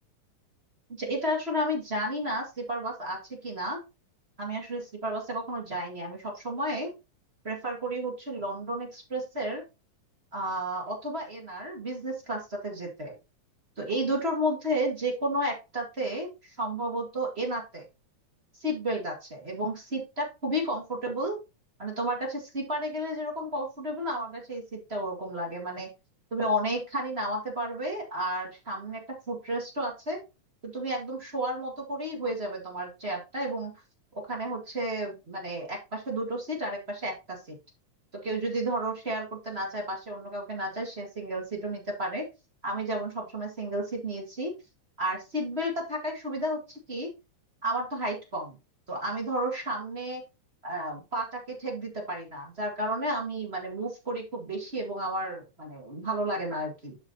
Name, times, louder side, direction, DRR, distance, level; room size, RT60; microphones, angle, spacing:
voice 1, 1.0-3.8 4.4-6.9 7.4-9.6 10.3-13.1 13.8-17.8 18.6-21.4 21.8-25.9 26.3-29.0 29.3-30.2 30.6-33.7 34.1-37.6 38.2-42.2 42.6-44.5 45.0-47.1 47.6-48.6 48.9-50.2 50.6-57.0, right 1 dB, 25° right, -1 dB, 1.6 m, -32 dB
11.5 x 4.8 x 2.7 m, 0.28 s
omnidirectional pair, 3.5 m